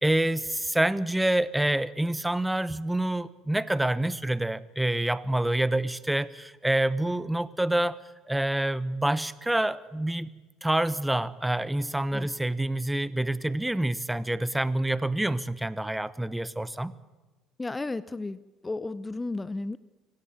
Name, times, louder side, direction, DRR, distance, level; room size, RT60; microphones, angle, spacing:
voice 1, 0.0-8.0 8.3-10.3 10.6-16.9, right 1 dB, 10° right, 17 dB, 1.0 m, -27 dB
voice 2, 17.6-18.4 18.6-19.8, left 2 dB, 20° left, 18 dB, 0.7 m, -33 dB
25.0 x 16.5 x 9.0 m, 1.2 s
hypercardioid pair, 60°, 0 cm